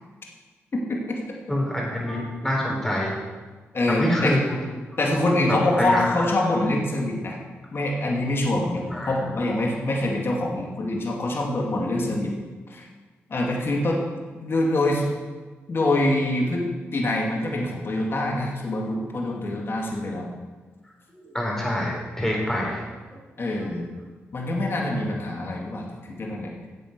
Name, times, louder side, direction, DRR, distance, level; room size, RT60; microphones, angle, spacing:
voice 1, 1.5-3.1 3.9-4.6 5.1-6.3 8.9-9.1 21.1-22.8 23.7-23.9, left 1 dB, 10° left, -3 dB, 4.3 m, -26 dB
voice 2, 3.7-4.4 5.0-7.4 7.7-12.3 12.7-12.9 13.3-14.0 14.3-15.1 15.7-16.6 16.9-20.3 23.4-23.9 24.3-26.5, left 1 dB, 50° left, -1 dB, 2.4 m, -25 dB
9.2 x 8.0 x 6.8 m, 1.4 s
cardioid pair, 65°, 5 cm